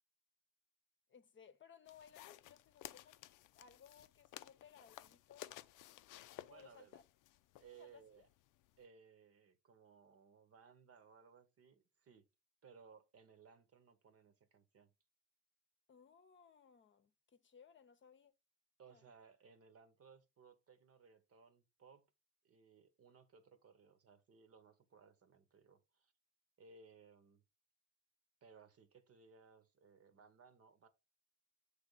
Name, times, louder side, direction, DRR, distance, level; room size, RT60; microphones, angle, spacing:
voice 1, 1.1-3.2 3.5-5.7 6.5-7.0 7.7-8.3 15.9-18.3 18.9-19.1, left 7 dB, 40° left, 0.7 m, -63 dB
sound 1, 1.9-8.8, left 15 dB, 90° left, 0.5 m, -56 dB
voice 2, 6.5-6.9 7.6-8.3 8.8-12.3 12.6-14.9 18.8-22.1 22.4-26.1 26.6-27.4 28.4-30.9, right 5 dB, 50° right, 1.1 m, -63 dB
7.6 x 3.5 x 3.9 m
cardioid pair, 90°, 30 cm